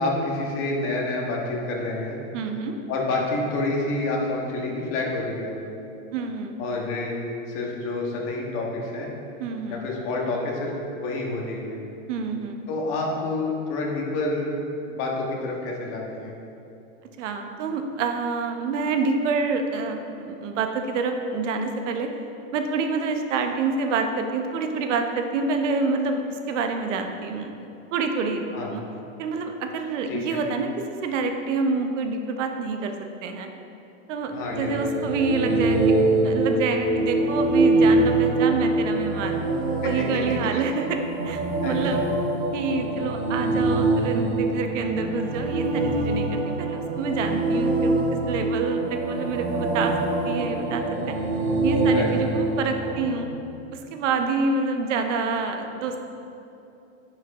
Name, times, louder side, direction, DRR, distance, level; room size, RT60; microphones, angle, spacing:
voice 1, 0.0-2.2 2.9-5.6 6.6-7.2 7.5-9.1 9.7-11.8 12.7-14.5 14.9-16.3 28.5-28.7 30.1-30.4 34.3-34.9 39.8-39.9 41.6-41.8 51.8-52.1, left 2 dB, 30° left, -1 dB, 1.4 m, -28 dB
voice 2, 2.3-2.8 6.1-6.6 9.4-9.8 12.1-12.6 17.2-22.1 22.5-27.5 27.9-28.8 29.2-32.9 33.2-33.5 34.1-36.0 36.2-39.4 39.8-42.0 42.5-50.0 50.2-51.1 51.6-53.3 53.7-56.0, right 4 dB, 65° right, 5 dB, 0.9 m, -27 dB
sound 1, 34.3-53.1, right 2 dB, 40° right, 1.2 m, -24 dB
10.5 x 5.6 x 3.6 m, 2.8 s
supercardioid pair, 155°, 40 cm